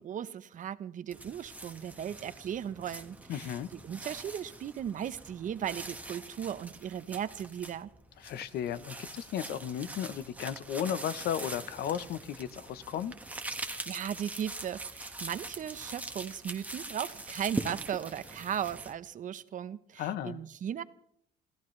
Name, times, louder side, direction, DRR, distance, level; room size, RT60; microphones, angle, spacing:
voice 1, 0.0-7.9 13.6-20.8, right 9 dB, 50° right, 14 dB, 0.9 m, -37 dB
sound 1, 1.1-18.9, right 2 dB, 10° right, 1.4 m, -43 dB
voice 2, 3.3-3.7 8.2-13.1 20.0-20.4, left 9 dB, 70° left, 14 dB, 0.9 m, -35 dB
26.5 x 16.0 x 3.3 m, 0.71 s
cardioid pair, 110°, 17 cm